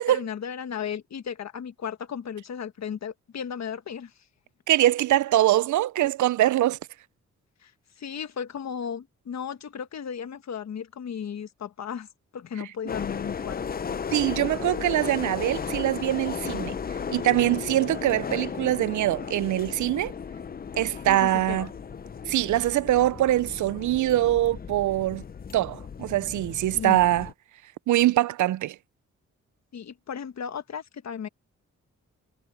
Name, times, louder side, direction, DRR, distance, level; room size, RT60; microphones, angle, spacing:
voice 1, 0.0-4.1 7.6-7.7 8.0-12.1 12.3-13.8 21.1-21.7 26.7-27.0 29.7-31.3, left 7 dB, 60° left, 1.4 m, -35 dB
voice 2, 4.7-6.8 14.1-16.7 17.1-20.1 20.8-21.7 22.3-25.2 25.5-27.3 27.9-28.8, right 14 dB, 80° right, 0.5 m, -23 dB
sound 1, 12.9-27.3, left 6 dB, 30° left, 0.6 m, -35 dB
cardioid pair, 95°, 30 cm